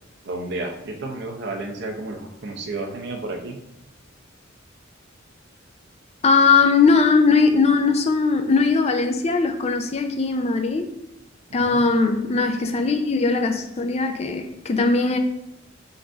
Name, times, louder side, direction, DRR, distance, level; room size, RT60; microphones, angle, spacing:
voice 1, 0.2-3.6 11.6-11.8, right 2 dB, 60° right, 3 dB, 0.7 m, -31 dB
voice 2, 6.2-10.9 11.5-15.2, left 4 dB, 35° left, 6 dB, 0.4 m, -19 dB
3.9 x 2.6 x 4.4 m, 0.86 s
head